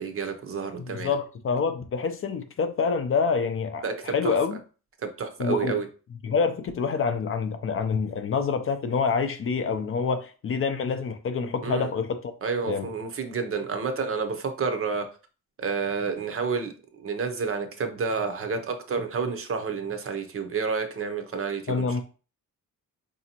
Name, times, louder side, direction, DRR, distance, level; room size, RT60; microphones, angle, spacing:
voice 1, 0.0-1.1 3.8-4.4 5.0-5.9 11.6-11.9 12.4-15.1 15.6-22.0, right 5 dB, 40° right, 0.6 m, -30 dB
voice 2, 0.8-4.6 5.4-5.8 6.2-12.2 12.7-12.9 21.7-22.0, left 5 dB, 40° left, 0.4 m, -27 dB
4.9 x 2.7 x 2.8 m
wide cardioid pair, 145°, 33 cm